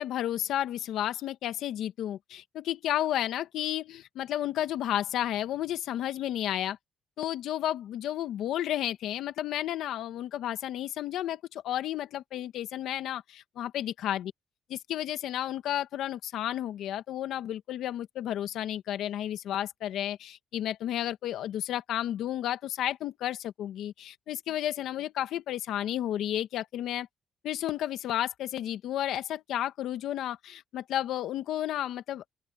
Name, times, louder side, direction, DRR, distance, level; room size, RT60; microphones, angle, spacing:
voice 1, 0.0-6.8 7.2-14.3 14.7-27.1 27.4-32.2, left 12 dB, 80° left, 1.5 m, -32 dB
open air
cardioid pair, 90°, 0 cm